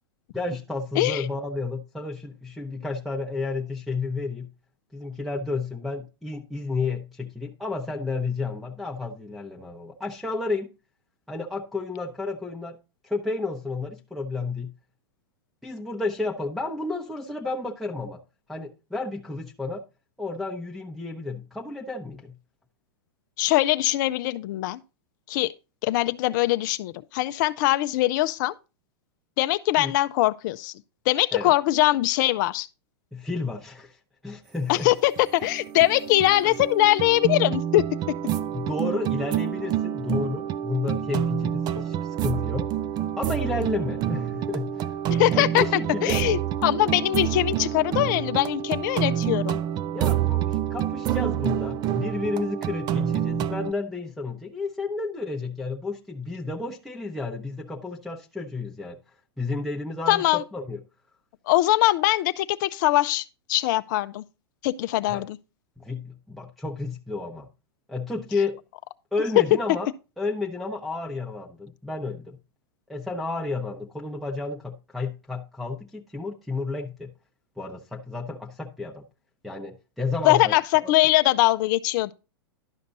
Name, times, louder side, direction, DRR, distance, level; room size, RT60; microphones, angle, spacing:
voice 1, 0.3-4.5 4.9-10.7 11.3-12.8 13.0-14.7 15.6-18.2 18.5-19.8 20.2-22.4 29.8-29.9 31.3-31.5 33.1-34.9 38.5-42.7 43.2-45.0 45.3-46.2 49.9-59.0 59.4-60.8 65.1-65.2 65.8-67.5 67.9-68.6 69.1-69.9 70.2-72.4 72.9-77.1 77.6-79.0 79.4-80.5, left 3 dB, ahead, 0.8 m, -31 dB
voice 2, 1.0-1.3 23.4-24.8 25.3-25.5 25.8-28.5 29.4-30.7 31.1-32.7 34.7-35.1 35.4-37.8 41.8-41.9 45.1-45.6 46.0-49.6 60.1-60.4 61.5-64.2 64.6-65.4 80.2-82.1, left 16 dB, 50° left, 0.5 m, -22 dB
sound 1, 34.8-34.9 35.2-53.7, right 10 dB, 35° right, 0.4 m, -28 dB
11.5 x 5.2 x 4.0 m
hypercardioid pair, 105°, 13 cm